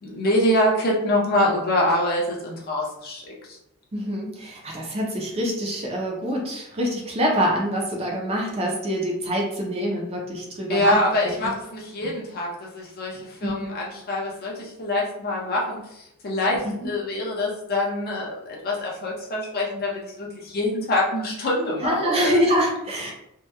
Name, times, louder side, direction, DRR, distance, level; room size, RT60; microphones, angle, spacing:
voice 1, 0.0-3.6 10.7-22.4, left 1 dB, 45° left, -3 dB, 0.5 m, -25 dB
voice 2, 3.9-11.0 11.2-11.5 13.4-13.7 16.6-16.9 21.8-23.1, equal, 25° right, -1 dB, 0.4 m, -25 dB
2.7 x 2.1 x 2.2 m, 0.81 s
head